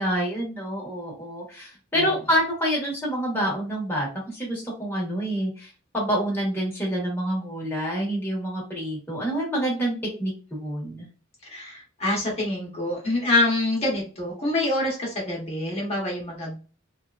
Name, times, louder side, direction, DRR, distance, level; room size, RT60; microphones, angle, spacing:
voice 1, 0.0-9.9 10.2-11.1, equal, 10° left, -3 dB, 1.0 m, -27 dB
voice 2, 11.5-16.6, left 2 dB, 30° left, -3 dB, 0.9 m, -26 dB
2.8 x 2.2 x 2.3 m, 0.36 s
head